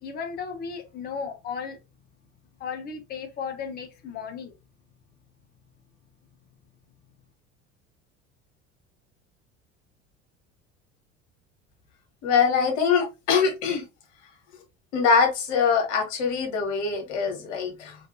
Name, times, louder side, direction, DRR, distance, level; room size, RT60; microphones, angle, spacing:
voice 1, 0.0-1.8 2.6-4.6, left 6 dB, 25° left, 0.6 m, -35 dB
voice 2, 12.2-13.8 14.9-18.0, left 5 dB, 60° left, 1.2 m, -23 dB
3.1 x 2.6 x 2.6 m
figure-of-eight pair, 65°, 38 cm